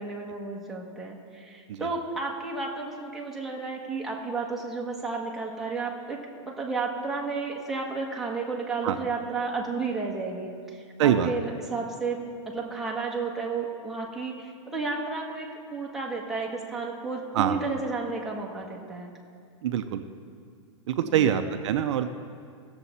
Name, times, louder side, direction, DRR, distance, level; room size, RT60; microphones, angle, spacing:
voice 1, 0.0-19.1, right 4 dB, ahead, -3 dB, 1.1 m, -32 dB
voice 2, 11.0-11.3 17.3-17.6 19.6-20.0 20.9-22.1, right 10 dB, 65° right, 8 dB, 0.6 m, -24 dB
17.0 x 7.0 x 4.2 m, 2.2 s
supercardioid pair, 155°, 16 cm